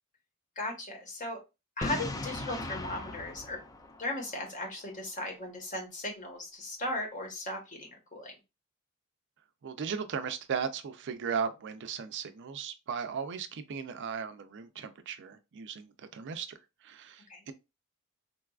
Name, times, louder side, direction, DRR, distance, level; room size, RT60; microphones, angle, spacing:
voice 1, 0.6-1.4 1.8-3.6 4.0-8.4 17.3-17.5, left 2 dB, 35° left, 1.0 m, -37 dB
Boom, 1.8-4.7, left 2 dB, 15° left, 0.3 m, -38 dB
voice 2, 9.6-17.5, right 6 dB, 55° right, 0.4 m, -37 dB
3.9 x 2.3 x 2.3 m
head